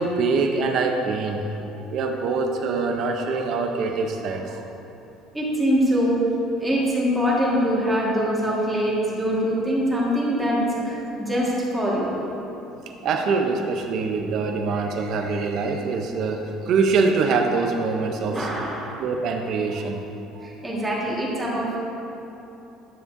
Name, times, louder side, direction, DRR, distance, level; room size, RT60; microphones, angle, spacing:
voice 1, 0.0-1.4 1.7-4.7 13.0-18.5 19.0-20.0 20.3-20.5, right 4 dB, 55° right, 3 dB, 0.6 m, -24 dB
voice 2, 5.3-6.2 6.6-12.1 18.3-19.0 20.4-21.8, equal, 10° right, -6 dB, 1.6 m, -23 dB
10.0 x 7.1 x 2.6 m, 3.0 s
cardioid pair, 135°, 0 cm